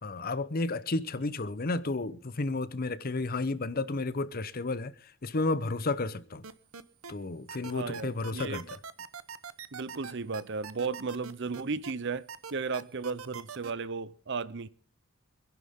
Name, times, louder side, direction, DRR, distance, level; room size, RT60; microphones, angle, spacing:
voice 1, 0.0-6.4 7.1-8.8, left 3 dB, 45° left, 0.8 m, -32 dB
sound 1, 6.4-7.1 7.5-11.9 12.3-13.7, right 6 dB, 85° right, 1.0 m, -42 dB
voice 2, 7.7-8.6 9.7-14.7, right 4 dB, 55° right, 0.7 m, -35 dB
26.0 x 11.0 x 3.6 m
head